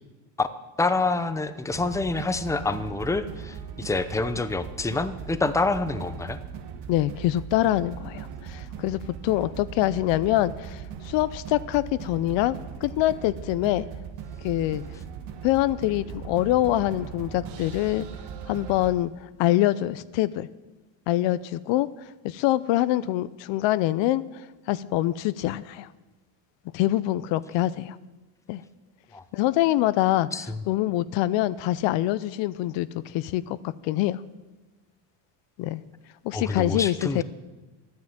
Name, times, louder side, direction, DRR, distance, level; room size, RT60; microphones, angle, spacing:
voice 1, 0.8-6.4 29.1-29.2 30.3-30.6 36.3-37.2, left 3 dB, 5° left, 11 dB, 0.7 m, -27 dB
sound 1, 1.7-18.9, right 7 dB, 70° right, 1.5 m, -39 dB
voice 2, 6.9-13.9 14.4-14.8 15.4-18.1 18.5-19.1 19.4-20.5 21.1-21.9 22.2-24.2 24.7-25.9 26.7-28.0 28.5-28.6 29.3-30.3 30.7-34.2 35.6-35.8 36.2-37.2, left 15 dB, 75° left, 16 dB, 0.7 m, -25 dB
13.0 x 9.6 x 8.8 m, 1.2 s
cardioid pair, 115°, 45 cm